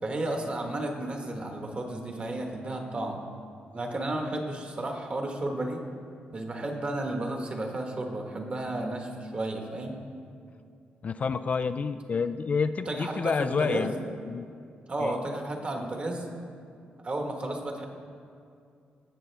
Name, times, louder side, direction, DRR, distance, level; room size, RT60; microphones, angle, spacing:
voice 1, 0.0-3.2 3.7-5.8 6.3-10.0 12.8-13.9 14.9-16.2 17.0-17.9, right 1 dB, 35° right, 2 dB, 1.4 m, -32 dB
voice 2, 11.0-13.9 14.3-14.5 15.0-15.1, left 5 dB, 40° left, 9 dB, 0.3 m, -28 dB
17.5 x 6.8 x 3.4 m, 2.4 s
cardioid pair, 100°, 4 cm